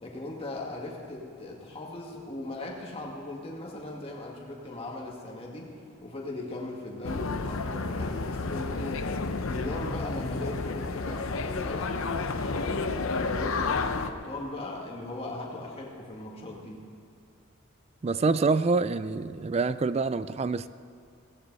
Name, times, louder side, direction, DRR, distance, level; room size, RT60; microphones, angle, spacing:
voice 1, 0.0-5.7 6.0-9.2 9.4-12.9 13.2-16.8, left 2 dB, 25° left, -1 dB, 2.0 m, -38 dB
sound 1, 7.0-14.1, left 3 dB, 65° left, 0.7 m, -31 dB
voice 2, 18.0-20.7, right 4 dB, 30° right, 14 dB, 0.3 m, -26 dB
17.5 x 15.0 x 4.1 m, 2.4 s
head